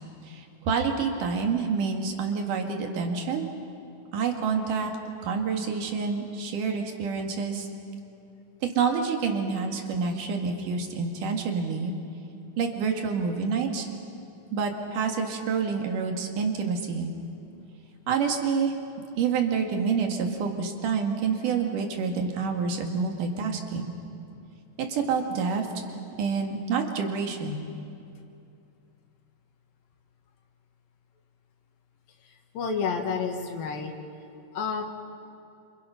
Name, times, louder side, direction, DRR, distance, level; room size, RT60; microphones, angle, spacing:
voice 1, 0.2-3.5 4.1-4.9 5.2-7.7 8.6-11.9 12.6-13.9 14.5-17.1 18.1-18.7 19.2-23.9 24.8-25.7 26.2-27.6, right 5 dB, 65° right, 3 dB, 3.4 m, -28 dB
voice 2, 32.2-33.9 34.5-34.8, left 5 dB, 80° left, 3 dB, 3.3 m, -30 dB
29.5 x 27.0 x 5.8 m, 2.7 s
omnidirectional pair, 4.1 m